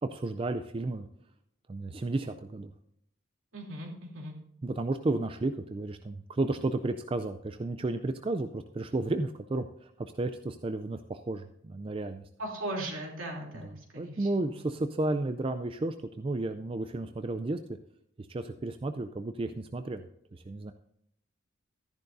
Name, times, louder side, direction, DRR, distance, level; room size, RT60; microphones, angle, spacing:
voice 1, 0.0-1.1 1.7-2.7 4.6-12.2 13.5-17.6 18.2-20.7, right 2 dB, 25° right, 9 dB, 0.3 m, -33 dB
voice 2, 3.5-4.3 12.4-14.3, right 1 dB, 70° right, -1 dB, 3.0 m, -38 dB
13.5 x 10.5 x 2.6 m, 0.74 s
head